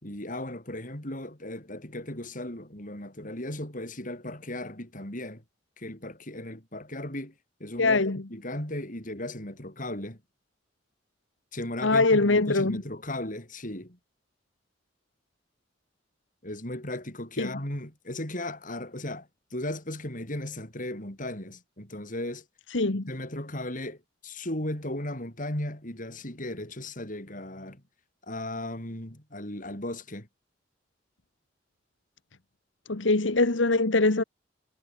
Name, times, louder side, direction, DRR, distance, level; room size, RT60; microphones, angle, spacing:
voice 1, 0.0-5.4 5.8-7.3 7.6-8.0 8.3-10.2 11.5-14.0 16.4-22.4 22.9-27.8 28.3-30.3, left 1 dB, 45° left, 7.1 m, -36 dB
voice 2, 7.8-8.2 11.8-12.8 17.4-17.5 22.7-23.1 32.9-34.2, left 3 dB, 75° left, 1.5 m, -23 dB
head